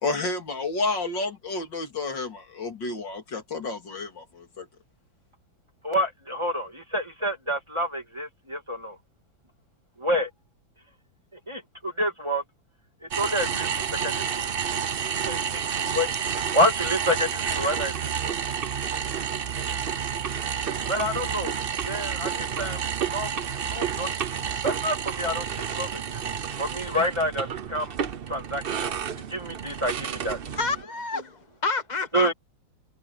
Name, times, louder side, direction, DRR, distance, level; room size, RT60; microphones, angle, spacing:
voice 1, 0.0-4.7, left 3 dB, 65° left, 3.7 m, -30 dB
voice 2, 5.8-9.0 10.0-10.3 11.5-12.4 13.0-14.6 15.2-18.3 20.9-21.5 21.8-23.3 23.7-24.1 24.6-26.2 26.6-27.9 28.3-30.6 32.1-32.3, equal, 15° right, 2.6 m, -28 dB
sound 1, 13.1-30.8, right 7 dB, 70° right, 0.5 m, -30 dB
voice 3, 30.5-32.3, left 3 dB, 25° left, 1.2 m, -29 dB
omnidirectional pair, 2.1 m